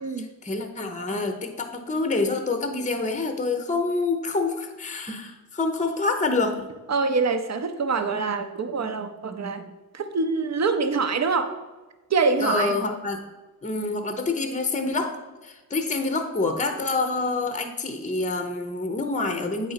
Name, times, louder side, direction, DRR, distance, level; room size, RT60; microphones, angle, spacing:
voice 1, 0.2-6.7 12.4-13.2 13.6-19.7, left 3 dB, 20° left, 6 dB, 0.7 m, -27 dB
voice 2, 6.9-11.6 12.1-12.8, right 4 dB, 45° right, 9 dB, 0.7 m, -25 dB
8.7 x 4.1 x 5.7 m, 1.2 s
wide cardioid pair, 130°, 38 cm